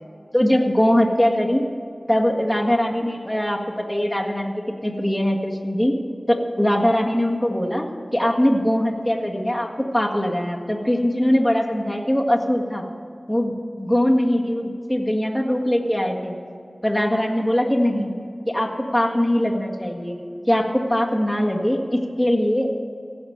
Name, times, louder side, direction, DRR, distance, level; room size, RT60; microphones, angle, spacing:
voice 1, 0.3-1.7 2.1-5.9 6.3-7.8 8.1-9.7 9.9-12.8 13.3-16.3 16.8-18.1 18.5-20.2 20.5-22.7, equal, 5° left, -1 dB, 1.8 m, -21 dB
16.0 x 6.0 x 9.3 m, 2.4 s
wide cardioid pair, 60°, 0 cm